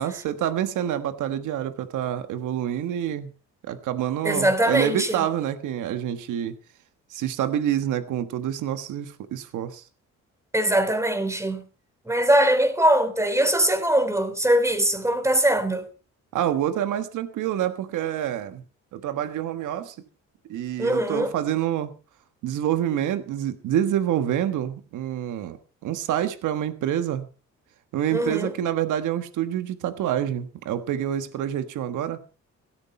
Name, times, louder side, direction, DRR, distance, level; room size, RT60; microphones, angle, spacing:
voice 1, 0.0-3.3 3.7-6.6 7.1-9.8 16.3-18.6 18.9-20.0 20.5-21.9 22.4-25.6 25.8-27.3 27.9-32.2, right 11 dB, 80° right, 1.4 m, -27 dB
voice 2, 4.2-5.2 10.5-11.6 12.1-15.9 20.8-21.3 28.1-28.5, right 1 dB, 10° right, 3.3 m, -21 dB
16.5 x 13.5 x 4.3 m
cardioid pair, 90°, 30 cm